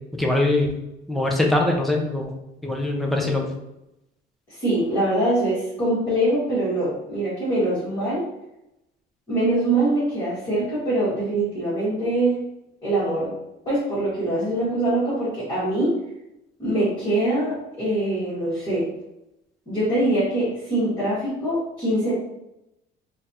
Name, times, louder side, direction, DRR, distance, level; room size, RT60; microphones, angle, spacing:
voice 1, 0.2-0.7 1.1-2.3 2.6-3.5, left 2 dB, ahead, 0 dB, 0.4 m, -22 dB
voice 2, 4.5-8.2 9.3-12.4 12.8-13.3 13.6-16.0 16.6-18.9 19.7-22.1, right 1 dB, 20° left, -12 dB, 1.5 m, -23 dB
4.0 x 2.5 x 2.8 m, 0.88 s
cardioid pair, 170°, 19 cm